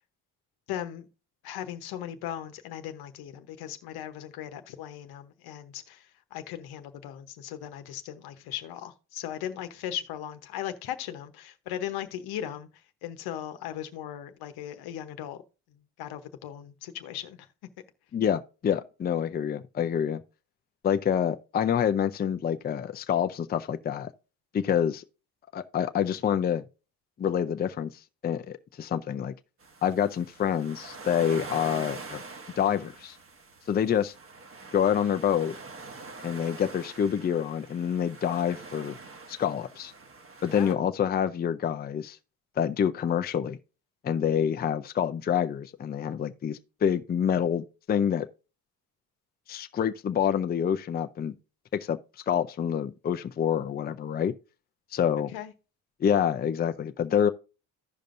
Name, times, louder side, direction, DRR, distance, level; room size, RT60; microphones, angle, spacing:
voice 1, 0.7-1.1 1.4-6.1 6.3-12.7 13.0-15.4 16.0-17.4 40.5-40.8 55.3-55.5, left 11 dB, 75° left, 1.0 m, -38 dB
voice 2, 18.1-20.2 20.8-24.1 24.5-25.0 25.5-26.6 27.2-27.9 28.2-29.3 29.8-32.2 32.6-33.2 33.7-34.1 34.7-35.6 36.2-39.0 39.3-39.9 40.4-42.2 42.6-43.6 44.0-48.3 49.5-51.3 51.7-52.0 52.3-54.3 54.9-55.3 56.0-57.3, left 8 dB, 25° left, 0.5 m, -27 dB
sound 1, 29.6-40.7, right 3 dB, 35° right, 1.2 m, -44 dB
15.0 x 5.2 x 2.5 m
supercardioid pair, 85°, 37 cm